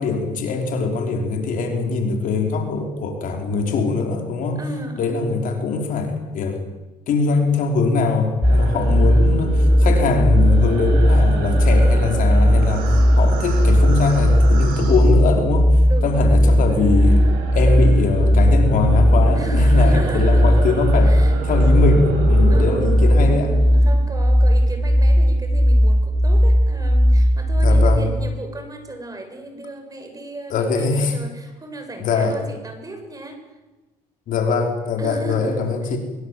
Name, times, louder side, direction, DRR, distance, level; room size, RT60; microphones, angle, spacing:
voice 1, 0.0-4.6 5.0-6.6 7.1-15.7 16.0-17.2 17.5-21.1 21.4-23.6 27.6-28.1 30.5-31.1 32.0-32.3 34.3-36.0, left 4 dB, 65° left, 3 dB, 5.2 m, -22 dB
voice 2, 4.6-5.2 8.7-9.2 15.9-16.9 19.3-20.6 21.0-21.4 21.7-21.9 22.5-22.9 23.7-33.5 35.0-36.0, right 2 dB, 25° right, 6 dB, 6.6 m, -35 dB
sound 1, 8.4-28.0, equal, ahead, 1.0 m, -16 dB
sound 2, 8.4-15.8 16.0-24.0, right 3 dB, 85° right, 6.8 m, -32 dB
23.5 x 22.5 x 7.9 m, 1.1 s
supercardioid pair, 85°, 15 cm